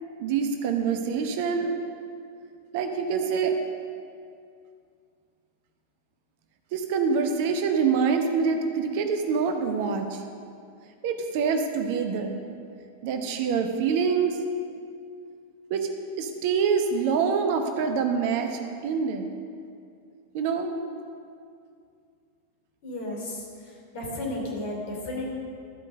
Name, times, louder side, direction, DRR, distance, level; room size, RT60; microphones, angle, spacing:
voice 1, 0.2-1.8 2.7-3.6 6.7-10.2 11.0-12.4 13.0-14.4 15.7-15.9 16.2-19.3 20.3-20.7, right 6 dB, 50° right, 5 dB, 0.9 m, -25 dB
voice 2, 22.8-23.4 23.9-25.3, left 1 dB, 50° left, -2 dB, 3.0 m, -33 dB
13.5 x 5.4 x 6.5 m, 2.4 s
figure-of-eight pair, 90°, 0 cm